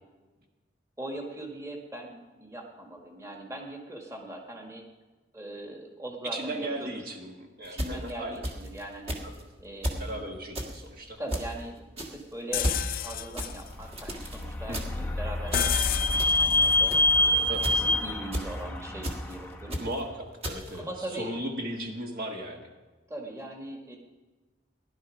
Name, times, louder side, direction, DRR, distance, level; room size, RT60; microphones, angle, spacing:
voice 1, 1.0-4.8 5.3-6.9 7.7-9.2 9.6-10.2 11.2-16.9 17.2-19.8 20.8-21.4 23.1-24.0, right 1 dB, 15° right, 1 dB, 1.7 m, -40 dB
voice 2, 6.2-8.4 9.2-9.4 10.0-11.2 14.7-15.1 17.5-17.8 19.8-22.7, right 1 dB, 50° right, 2 dB, 1.4 m, -36 dB
sound 1, 7.6-8.8 9.1-9.4 9.8-10.1 10.5-10.8 11.3-11.6 12.0-12.2 12.6-12.9 13.4-14.4 14.7-15.1 15.5-15.8 16.2-16.5 16.9-17.2 17.6-17.9 18.3-18.6 19.0-19.4 19.7-20.0 20.4-20.8, equal, 30° right, 1.6 m, -34 dB
sound 2, 12.5-18.3, left 6 dB, 45° left, 0.5 m, -33 dB
Vehicle / Squeak, 14.1-19.7, left 1 dB, 10° left, 0.8 m, -26 dB
17.0 x 11.5 x 5.1 m, 1.3 s
head